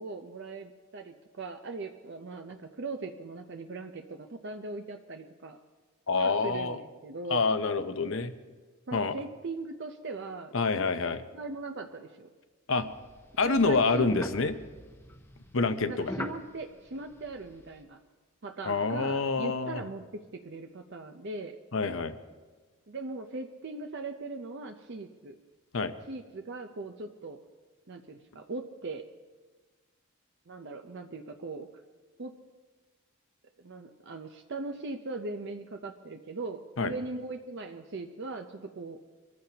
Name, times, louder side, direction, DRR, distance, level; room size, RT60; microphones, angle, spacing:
voice 1, 0.0-5.6 6.1-7.5 8.9-10.5 11.3-12.3 13.4-14.3 15.8-18.0 18.4-21.6 22.9-25.3 26.1-27.4 27.9-29.1 30.5-31.8 32.2-32.3 33.6-39.0, right 3 dB, 50° right, 5 dB, 0.7 m, -39 dB
voice 2, 6.1-6.8 7.3-8.3 8.9-9.1 10.5-11.2 12.7-12.9 13.4-14.5 15.5-16.1 18.6-19.8 21.7-22.2 25.7-25.9 36.8-36.9, left 4 dB, 60° left, 10 dB, 0.8 m, -27 dB
sound 1, 12.8-17.8, left 1 dB, 10° left, 0.8 m, -43 dB
24.0 x 14.5 x 2.9 m, 1.3 s
head